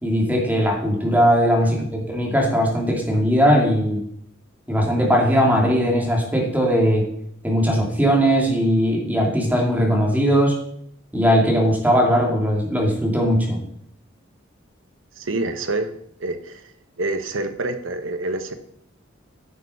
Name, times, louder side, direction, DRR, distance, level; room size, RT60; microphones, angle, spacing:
voice 1, 0.0-4.0 4.7-7.1 7.4-10.5 11.1-13.6, equal, 10° right, -1 dB, 2.6 m, -19 dB
voice 2, 15.2-15.9 16.2-16.7 17.0-18.5, right 2 dB, 80° right, 9 dB, 1.1 m, -27 dB
9.9 x 6.5 x 5.6 m, 0.69 s
head